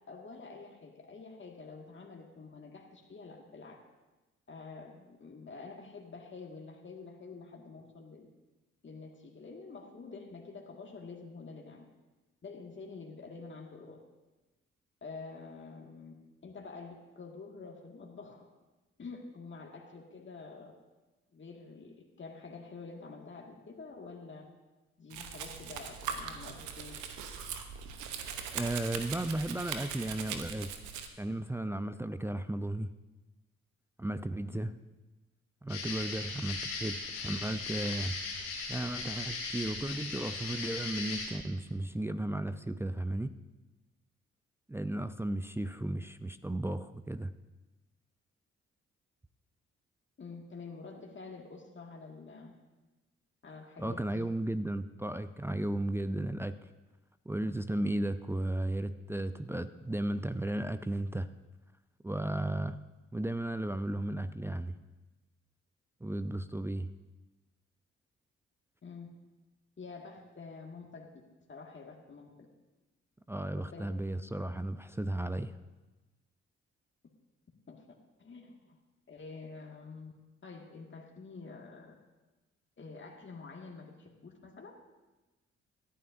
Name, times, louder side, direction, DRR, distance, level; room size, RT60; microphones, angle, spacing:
voice 1, 0.1-3.8 4.5-8.3 8.8-11.8 12.4-14.0 15.0-16.1 16.4-18.4 19.0-20.7 21.3-24.5 25.0-26.9 34.5-34.6 50.2-52.5 53.4-54.3 68.8-69.1 69.8-71.1 71.5-72.5 73.6-73.8 77.7-77.8 78.2-78.8 79.1-80.1 80.4-82.0 82.8-84.7, left 4 dB, 40° left, 0 dB, 1.9 m, -47 dB
Domestic sounds home sounds, 25.1-31.1, right 7 dB, 80° right, 0.9 m, -40 dB
voice 2, 28.5-30.7 31.2-32.9 34.0-34.7 35.6-43.3 44.7-47.3 53.8-56.6 57.3-61.3 62.0-62.8 63.1-64.8 66.0-66.9 73.3-75.6, right 1 dB, 10° right, 10 dB, 0.5 m, -35 dB
sound 1, 35.7-41.2, left 4 dB, 90° left, 2.2 m, -38 dB
18.0 x 11.0 x 2.6 m, 1.1 s
hypercardioid pair, 45°, 30 cm